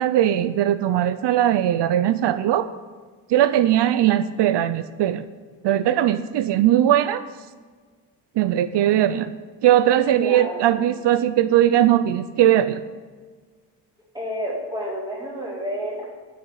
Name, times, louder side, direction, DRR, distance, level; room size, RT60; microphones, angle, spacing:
voice 1, 0.0-2.7 3.3-5.2 5.6-7.2 8.4-9.3 9.6-12.8, right 12 dB, 85° right, 13 dB, 0.6 m, -19 dB
voice 2, 10.1-10.8 14.1-16.0, equal, 10° right, -6 dB, 4.6 m, -30 dB
13.0 x 6.3 x 8.2 m, 1.5 s
wide cardioid pair, 145°, 41 cm